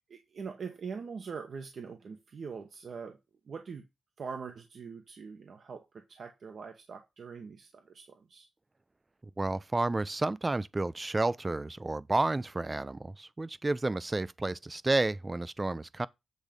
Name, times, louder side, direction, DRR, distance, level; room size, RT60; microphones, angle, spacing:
voice 1, 0.1-3.2 3.5-3.9 4.2-8.5, right 5 dB, 60° right, 1.1 m, -43 dB
voice 2, 9.4-16.1, right 2 dB, 20° right, 0.4 m, -31 dB
8.2 x 3.6 x 5.1 m
cardioid pair, 95°, 0 cm